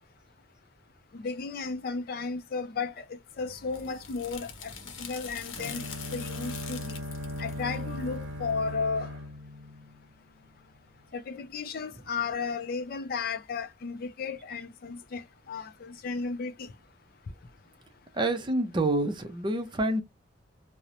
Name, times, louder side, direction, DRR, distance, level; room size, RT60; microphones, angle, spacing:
voice 1, 1.1-3.0 3.4-4.7 5.0-5.8 6.1-6.8 7.4-9.2 11.1-16.7, left 4 dB, 50° left, 0.4 m, -34 dB
sound 1, 3.3-8.8, left 6 dB, 90° left, 0.7 m, -44 dB
Bowed string instrument, 5.6-10.5, left 1 dB, 70° right, 0.7 m, -38 dB
voice 2, 18.1-20.0, right 2 dB, 25° right, 0.5 m, -27 dB
2.8 x 2.0 x 2.4 m
head